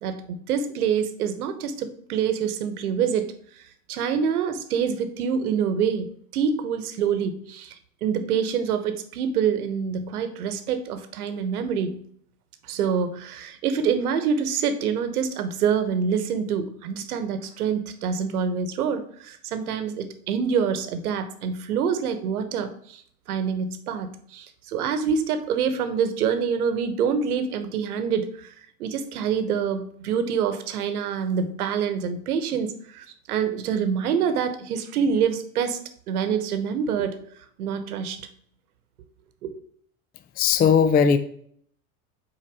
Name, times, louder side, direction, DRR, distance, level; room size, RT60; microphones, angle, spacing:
voice 1, 0.0-12.0 12.7-23.0 23.3-28.5 28.8-35.8 36.1-37.2 37.6-38.2 39.4-39.6, right 7 dB, 85° right, 10 dB, 1.1 m, -26 dB
voice 2, 40.4-41.2, left 7 dB, 20° left, 10 dB, 0.4 m, -18 dB
5.9 x 4.5 x 4.7 m, 0.62 s
hypercardioid pair, 90°, 44 cm